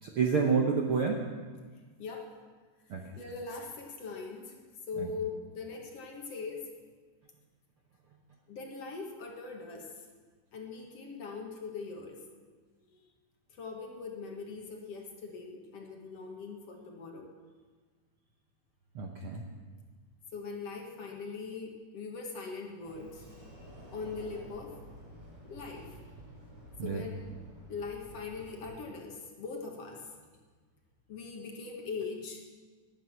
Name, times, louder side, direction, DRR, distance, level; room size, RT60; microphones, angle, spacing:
voice 1, 0.0-1.2 2.9-3.1 5.0-5.1 18.9-19.4 26.8-27.1, right 5 dB, 60° right, 1 dB, 1.4 m, -29 dB
voice 2, 2.0-2.3 3.0-4.6 4.9-6.7 8.5-9.9 10.5-12.2 12.9-13.0 13.5-17.3 20.3-23.2 23.9-24.8 25.4-25.9 26.8-27.3 27.7-30.1 31.1-32.4, left 4 dB, 55° left, 1 dB, 2.4 m, -41 dB
Sliding door, 22.8-28.7, right 1 dB, 25° right, 6.1 m, -51 dB
19.0 x 9.7 x 5.9 m, 1.4 s
omnidirectional pair, 3.7 m